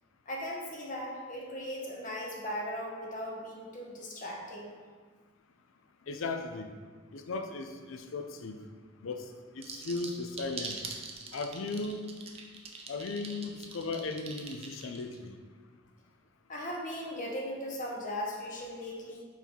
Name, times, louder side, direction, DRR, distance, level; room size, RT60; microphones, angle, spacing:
voice 1, 0.3-4.7 16.5-19.2, equal, 40° left, -2 dB, 1.0 m, -38 dB
voice 2, 6.1-6.7 7.1-8.6 9.0-10.8 11.3-12.0 12.9-15.4, left 3 dB, 75° left, 6 dB, 0.5 m, -37 dB
sound 1, 9.6-15.2, right 5 dB, 30° right, 0.5 m, -42 dB
4.6 x 3.8 x 5.4 m, 1.5 s
head